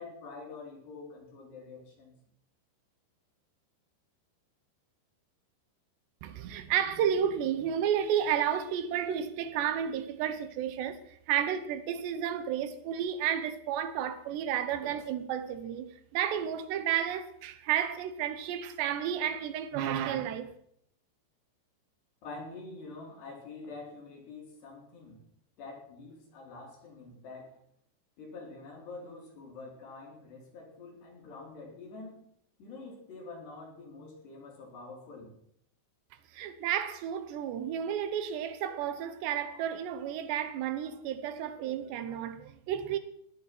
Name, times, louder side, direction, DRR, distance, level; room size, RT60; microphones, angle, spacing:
voice 1, 0.0-2.1 22.2-25.2 25.6-27.6 28.2-32.2 32.6-35.3, left 3 dB, 70° left, 6.0 m, -46 dB
voice 2, 6.2-20.5 36.3-43.0, right 9 dB, 80° right, 3.2 m, -32 dB
17.5 x 11.5 x 6.0 m
omnidirectional pair, 5.1 m